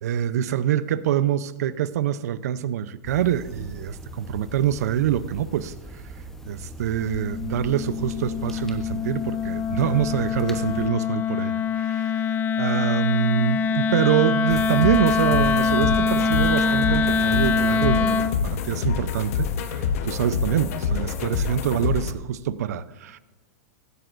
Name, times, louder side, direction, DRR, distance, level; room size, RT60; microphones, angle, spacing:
voice 1, 0.0-6.0 6.5-23.2, right 10 dB, 75° right, 14 dB, 0.7 m, -25 dB
sound 1, 3.0-10.9, right 1 dB, 5° left, 0.9 m, -40 dB
Wind instrument woodwind instrument, 6.9-18.4, left 5 dB, 20° left, 0.5 m, -24 dB
sound 2, 14.5-22.1, left 6 dB, 60° left, 1.1 m, -27 dB
15.5 x 15.0 x 2.6 m, 1.2 s
hypercardioid pair, 135°, 9 cm